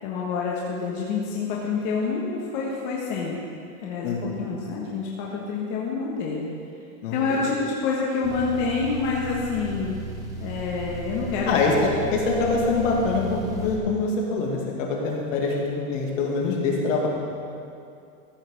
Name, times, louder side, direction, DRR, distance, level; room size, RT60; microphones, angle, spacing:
voice 1, 0.0-3.4 3.8-6.5 7.1-9.9 10.4-11.6, left 4 dB, 40° left, -4 dB, 1.4 m, -27 dB
voice 2, 4.0-4.4 7.0-7.2 11.5-17.1, left 3 dB, 65° left, -2 dB, 2.4 m, -24 dB
sound 1, 8.2-13.8, right 2 dB, 10° right, 0.7 m, -35 dB
14.5 x 5.7 x 6.6 m, 2.5 s
supercardioid pair, 175°, 41 cm